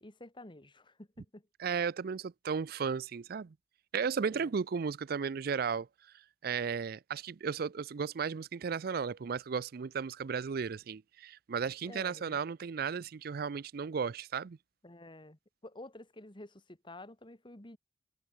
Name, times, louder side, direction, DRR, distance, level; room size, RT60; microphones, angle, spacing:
voice 1, 0.0-1.5 4.3-4.5 11.8-12.4 14.8-17.8, left 1 dB, 30° left, 2.1 m, -50 dB
voice 2, 1.6-3.5 3.9-6.1 6.4-14.6, right 6 dB, 60° right, 0.4 m, -35 dB
head